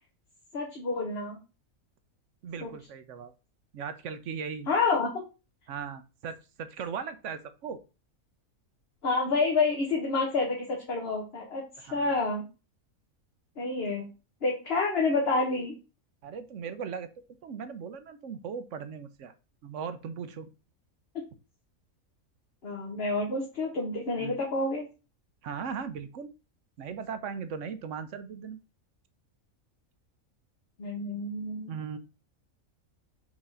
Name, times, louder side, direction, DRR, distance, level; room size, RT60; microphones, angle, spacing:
voice 1, 0.5-1.4 2.6-2.7 4.7-5.2 9.0-12.4 13.6-14.1 14.4-15.7 22.6-24.9 30.8-31.7, left 3 dB, 50° left, 0 dB, 1.3 m, -28 dB
voice 2, 2.4-3.3 3.7-4.7 5.7-7.8 11.8-12.1 16.2-17.1 17.4-19.3 19.6-20.5 24.2-24.4 25.4-26.3 26.8-28.6 31.7-32.0, right 6 dB, 65° right, 10 dB, 1.0 m, -38 dB
4.7 x 3.7 x 5.5 m, 0.31 s
omnidirectional pair, 1.4 m